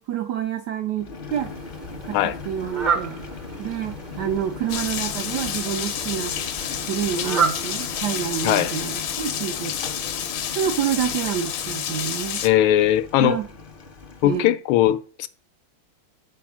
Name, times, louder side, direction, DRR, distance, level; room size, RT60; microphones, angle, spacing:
voice 1, 0.0-1.5 2.0-3.2 3.6-6.3 6.9-9.7 10.5-12.4 13.2-13.5 14.2-14.5, right 9 dB, 75° right, 0.9 m, -28 dB
Boiling, 1.0-14.5, left 4 dB, 45° left, 0.7 m, -39 dB
Fowl, 1.3-8.6, right 5 dB, 45° right, 0.6 m, -31 dB
Rain, 4.7-12.5, left 9 dB, 65° left, 1.1 m, -29 dB
voice 2, 12.4-13.4 14.2-15.3, left 12 dB, 80° left, 1.4 m, -19 dB
6.0 x 4.3 x 6.0 m
omnidirectional pair, 2.3 m